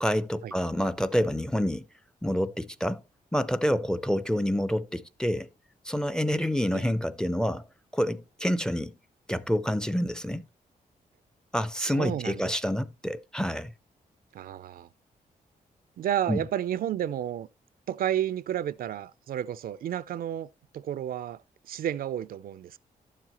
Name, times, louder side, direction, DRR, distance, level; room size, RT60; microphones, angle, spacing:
voice 1, 0.0-1.9 2.2-3.0 3.3-5.5 5.8-7.7 7.9-8.9 9.3-10.5 11.5-13.7 16.3-16.5, equal, 5° left, 0.4 m, -28 dB
voice 2, 11.8-12.5 14.3-14.9 16.0-17.5 17.9-20.5 20.7-21.4 21.7-22.8, right 11 dB, 75° right, 0.4 m, -31 dB
11.5 x 7.4 x 2.9 m
wide cardioid pair, 135°, 15 cm